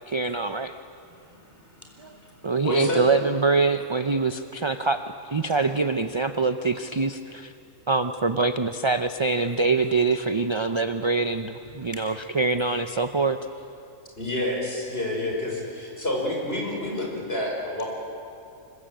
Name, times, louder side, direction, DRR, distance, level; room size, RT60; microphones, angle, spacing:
voice 1, 0.1-0.7 2.4-5.0 5.3-7.5 7.9-13.4, right 3 dB, 35° right, 9 dB, 0.5 m, -24 dB
voice 2, 1.0-2.6 3.8-3.9 5.4-5.6 9.4-9.5 11.8-12.3, left 1 dB, 10° left, 1 dB, 4.2 m, -49 dB
voice 3, 2.6-3.0 14.2-17.8, left 1 dB, 45° left, -1 dB, 5.7 m, -28 dB
25.0 x 21.5 x 9.0 m, 2.5 s
omnidirectional pair, 1.4 m